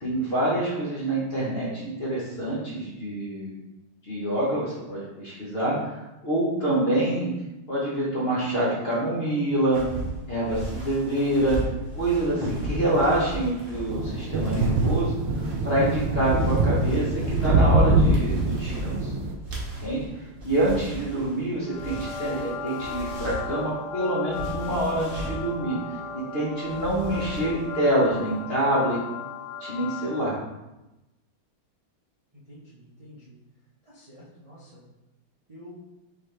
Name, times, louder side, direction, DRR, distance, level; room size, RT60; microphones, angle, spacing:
voice 1, 0.0-3.5 4.0-5.9 6.2-7.3 7.7-9.8 10.3-11.6 11.9-15.2 15.6-19.1 19.8-25.8 26.1-29.0 29.6-30.3, right 1 dB, 50° left, -6 dB, 0.7 m, -26 dB
sound 1, 9.7-23.7 24.2-25.5 26.6-27.7 28.0-28.3, right 1 dB, 40° right, 0.8 m, -37 dB
sound 2, 13.9-19.4, right 2 dB, 85° right, 1.4 m, -23 dB
sound 3, 21.6-30.5, left 4 dB, 70° left, 1.0 m, -36 dB
voice 2, 32.5-33.4 33.9-34.8 35.5-35.8, equal, 70° right, -9 dB, 0.3 m, -48 dB
4.6 x 3.4 x 3.2 m, 0.98 s
omnidirectional pair, 2.3 m